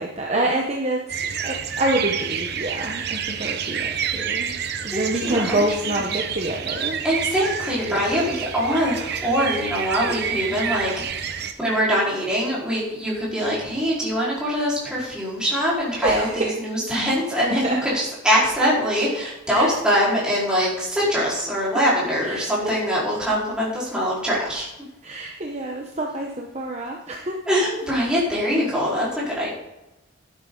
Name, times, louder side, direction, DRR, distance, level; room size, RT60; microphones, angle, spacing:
voice 1, 0.0-4.6 4.8-7.0 7.8-8.3 11.5-11.6 16.0-16.6 17.6-17.8 19.5-19.7 22.2-22.9 25.0-27.4, right 1 dB, 30° right, 0 dB, 1.1 m, -27 dB
sound 1, 1.1-11.5, right 7 dB, 50° right, 0.9 m, -29 dB
voice 2, 4.9-5.6 5.9-6.0 7.0-10.9 11.6-24.7 27.5-29.6, equal, 5° right, -7 dB, 4.6 m, -23 dB
12.0 x 9.5 x 4.0 m, 0.97 s
head